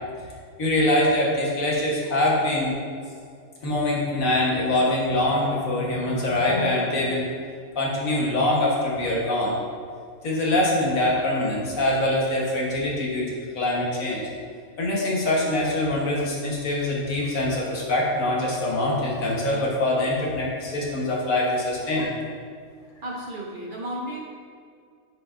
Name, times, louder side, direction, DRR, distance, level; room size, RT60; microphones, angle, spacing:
voice 1, 0.6-2.7 3.6-7.3 7.7-9.5 10.2-14.2 14.8-22.1, left 1 dB, 75° left, -4 dB, 1.7 m, -24 dB
voice 2, 23.0-24.2, right 1 dB, 45° right, -3 dB, 0.9 m, -33 dB
7.3 x 6.4 x 2.6 m, 2.2 s
omnidirectional pair, 1.4 m